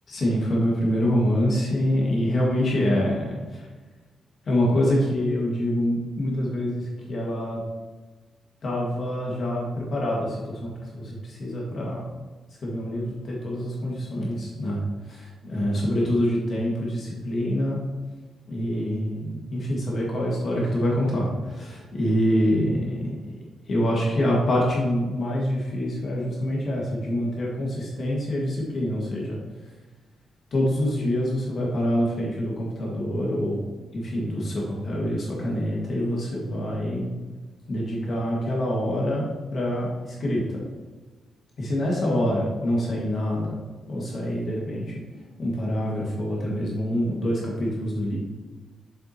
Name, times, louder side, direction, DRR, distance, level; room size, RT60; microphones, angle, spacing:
voice 1, 0.1-3.6 4.4-7.6 8.6-12.1 12.6-17.8 18.5-23.4 23.7-29.4 30.5-33.6 33.9-37.1 37.7-40.6 41.6-43.6 43.9-45.0 45.4-48.2, equal, 45° left, -3 dB, 1.8 m, -26 dB
7.2 x 7.2 x 2.9 m, 1.3 s
wide cardioid pair, 145°, 0 cm